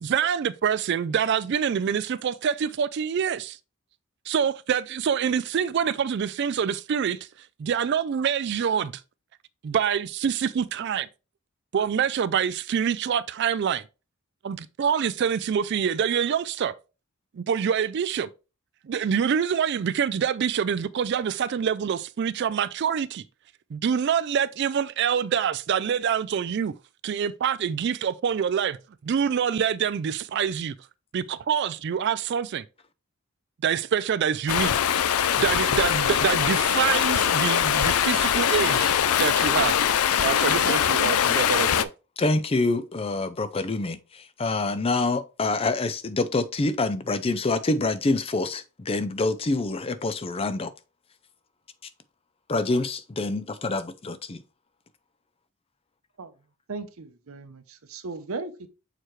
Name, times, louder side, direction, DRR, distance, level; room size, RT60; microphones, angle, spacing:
voice 1, 0.0-3.6 4.3-7.2 7.6-8.9 9.6-11.1 11.7-13.8 14.4-16.7 17.3-18.3 18.8-23.2 23.7-26.7 27.0-28.8 29.0-30.7 31.1-32.6 33.6-34.7 35.4-39.8 40.2-41.9, right 7 dB, 50° right, 0.3 m, -26 dB
Stream, 34.5-41.8, left 9 dB, 80° left, 0.4 m, -22 dB
voice 2, 42.2-50.7 52.5-54.4, left 3 dB, 25° left, 0.4 m, -26 dB
voice 3, 56.7-58.7, right 3 dB, 70° right, 0.7 m, -37 dB
6.7 x 4.6 x 3.1 m
head